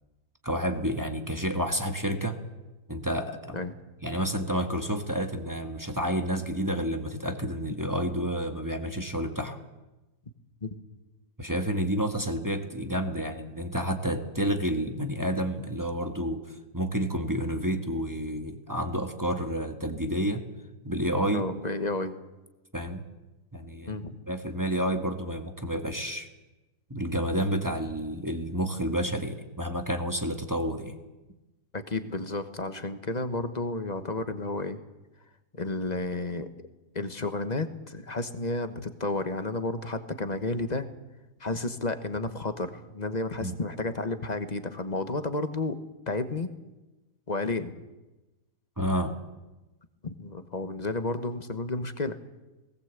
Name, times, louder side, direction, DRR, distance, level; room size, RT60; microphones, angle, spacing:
voice 1, 0.4-2.4 2.9-3.6 4.0-9.6 11.4-20.4 20.8-21.5 22.7-23.0 23.5-24.0 24.3-26.3 26.9-30.9 43.4-43.6 48.8-49.2, equal, 15° right, 5 dB, 1.4 m, -30 dB
voice 2, 21.3-22.2 23.9-24.1 31.7-34.8 35.5-36.5 36.9-40.9 41.4-45.8 46.1-46.5 47.3-47.7 50.0-52.2, left 2 dB, 30° left, 10 dB, 1.2 m, -31 dB
19.0 x 18.0 x 8.2 m, 1.1 s
omnidirectional pair, 1.7 m